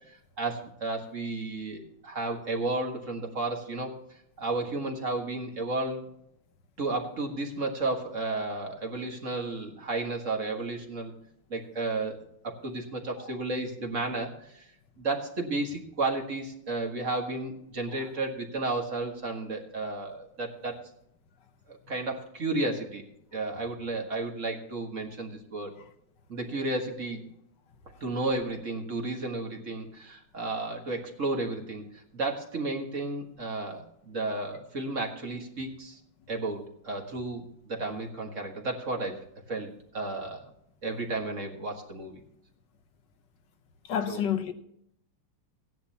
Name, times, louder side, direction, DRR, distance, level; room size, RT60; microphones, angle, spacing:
voice 1, 0.4-3.9 4.4-6.1 6.8-11.1 11.5-14.7 15.0-20.8 21.7-23.1 23.3-25.7 26.3-27.2 28.0-31.8 32.1-36.0 36.3-40.5 40.8-42.2 44.1-44.2, right 2 dB, 40° right, 1.8 m, -33 dB
voice 2, 43.9-44.5, left 9 dB, 60° left, 1.5 m, -28 dB
16.5 x 10.5 x 2.9 m
omnidirectional pair, 2.4 m